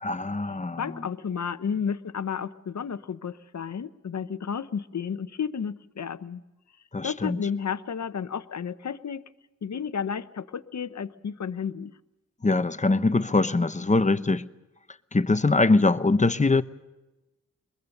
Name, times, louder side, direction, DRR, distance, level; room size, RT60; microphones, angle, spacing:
voice 1, 0.0-0.9 6.9-7.4 12.4-14.4 15.1-16.6, left 3 dB, 25° left, 0.8 m, -22 dB
voice 2, 0.8-6.4 7.0-9.2 9.6-11.9, left 7 dB, 70° left, 0.9 m, -32 dB
22.5 x 22.0 x 6.7 m
wide cardioid pair, 90°, 29 cm